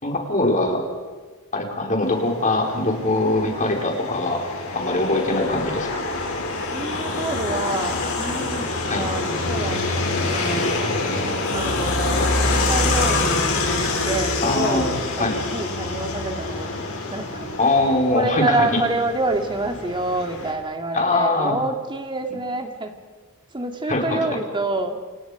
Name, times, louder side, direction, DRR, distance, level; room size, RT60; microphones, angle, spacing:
voice 1, 0.0-0.8 1.5-4.4 4.7-6.0 8.9-9.1 14.4-14.9 15.2-15.4 17.6-18.8 20.9-21.5 23.9-24.4, left 2 dB, 35° left, 1 dB, 4.6 m, -22 dB
sound 1, 2.1-20.5, left 2 dB, 70° left, 6.5 m, -26 dB
voice 2, 6.7-10.8 11.5-17.5 18.1-23.0 23.5-25.0, right 2 dB, 20° right, 5 dB, 2.4 m, -27 dB
29.0 x 27.5 x 5.1 m, 1.4 s
head